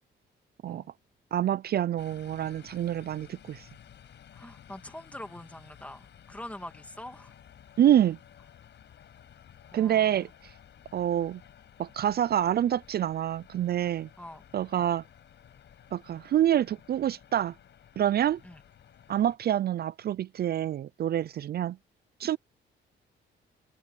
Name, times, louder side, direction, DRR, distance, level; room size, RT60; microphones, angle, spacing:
voice 1, 1.3-3.7 7.8-8.2 9.7-10.5 10.9-11.4 11.8-14.1 14.5-15.0 15.9-17.5 18.0-18.4 19.1-21.8 22.2-22.4, right 11 dB, 50° right, 0.5 m, -27 dB
sound 1, 2.0-19.4, left 9 dB, 65° left, 5.6 m, -54 dB
voice 2, 4.3-7.3 9.7-10.3 14.2-14.4 14.7-14.9 18.4-18.6, left 1 dB, 5° left, 2.6 m, -44 dB
cardioid pair, 90°, 20 cm